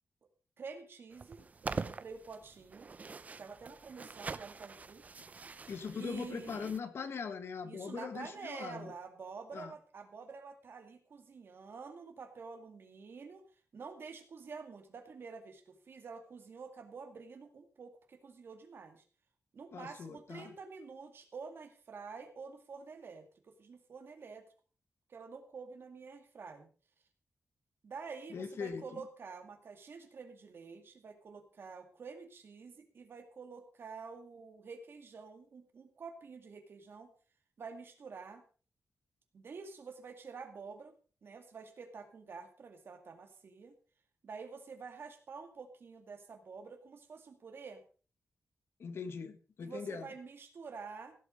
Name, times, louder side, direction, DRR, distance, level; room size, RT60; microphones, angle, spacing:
voice 1, 0.6-2.9 3.4-5.0 6.0-6.6 7.6-13.5 13.7-19.0 19.5-24.5 25.1-26.7 27.8-37.1 37.6-38.4 39.3-40.9 41.2-43.7 44.2-47.8 49.6-51.1, right 5 dB, 55° right, 7 dB, 2.2 m, -48 dB
sound 1, 1.1-6.8, right 4 dB, 35° right, 0.6 m, -44 dB
voice 2, 5.7-8.9 9.5-9.8 19.7-20.5 28.3-29.1 48.8-50.1, left 5 dB, 60° left, 10 dB, 1.5 m, -41 dB
16.5 x 8.3 x 5.2 m, 0.39 s
wide cardioid pair, 165°, 5 cm